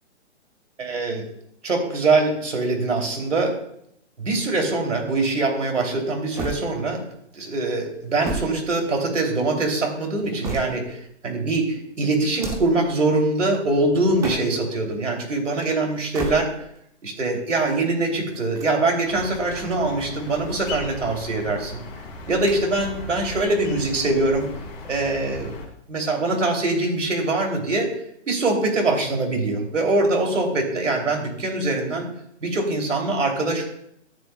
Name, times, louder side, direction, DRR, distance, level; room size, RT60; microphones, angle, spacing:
voice 1, 0.8-1.2 1.6-3.6 4.2-7.0 7.3-16.5 17.0-21.8 22.3-24.5 24.8-25.5 25.9-27.9 28.3-32.1 32.4-33.6, right 2 dB, 90° right, 1 dB, 3.1 m, -23 dB
sound 1, 6.4-7.2 8.0-9.3 10.0-11.1 12.2-12.9 14.0-14.8 15.9-16.8 18.3-19.3 20.2-21.1 22.3-22.9 23.2-23.3 24.3-25.1, right 4 dB, 10° right, 0.8 m, -35 dB
sound 2, 19.0-25.7, left 2 dB, 35° left, 2.8 m, -37 dB
13.5 x 9.8 x 2.3 m, 0.73 s
hypercardioid pair, 145°, 36 cm